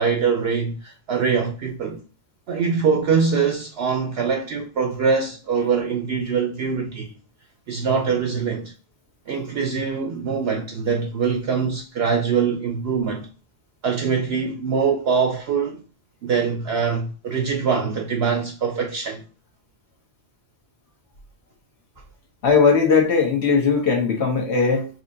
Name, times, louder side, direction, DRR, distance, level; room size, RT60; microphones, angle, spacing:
voice 1, 0.0-2.0 2.5-7.1 7.7-8.7 9.3-13.3 13.8-15.8 16.2-19.2, right 5 dB, 65° right, 0.7 m, -23 dB
voice 2, 22.4-24.9, left 5 dB, 60° left, 1.3 m, -18 dB
4.1 x 2.8 x 2.6 m
omnidirectional pair, 1.3 m